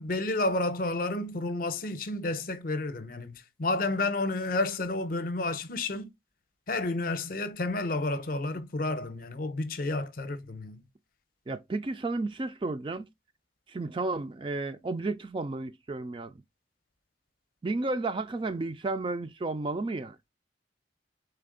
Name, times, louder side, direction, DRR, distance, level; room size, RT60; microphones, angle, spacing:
voice 1, 0.0-6.1 6.7-10.8, left 2 dB, 50° left, 0.7 m, -31 dB
voice 2, 11.5-13.1 13.7-16.4 17.6-20.2, right 3 dB, 25° right, 0.3 m, -32 dB
4.0 x 3.4 x 3.7 m
head